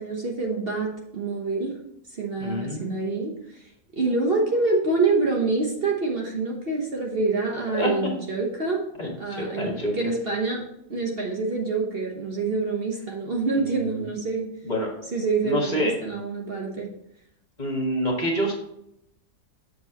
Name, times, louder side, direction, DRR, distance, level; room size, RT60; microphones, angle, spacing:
voice 1, 0.0-1.7 2.1-3.3 4.0-8.8 9.2-10.6 10.9-14.5 15.1-16.9, right 3 dB, 45° right, -1 dB, 1.3 m, -26 dB
voice 2, 2.4-3.0 7.7-7.9 9.0-10.1 13.7-14.1 14.6-14.9 15.4-15.9 17.6-18.5, equal, 30° left, 0 dB, 1.7 m, -27 dB
7.4 x 7.0 x 3.0 m, 0.79 s
omnidirectional pair, 1.5 m